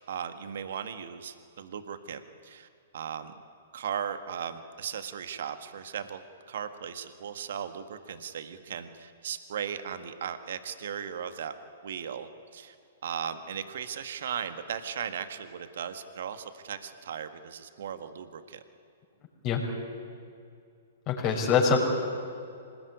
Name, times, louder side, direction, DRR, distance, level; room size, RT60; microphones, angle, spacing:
voice 1, 0.1-2.7 2.9-3.3 3.7-6.2 6.5-11.5 11.8-12.7 13.0-18.6 21.2-21.4, right 8 dB, 65° right, 9 dB, 1.7 m, -37 dB
voice 2, 21.1-21.8, left 6 dB, 35° left, 1 dB, 5.8 m, -24 dB
25.5 x 20.5 x 9.5 m, 2.4 s
hypercardioid pair, 115°, 0 cm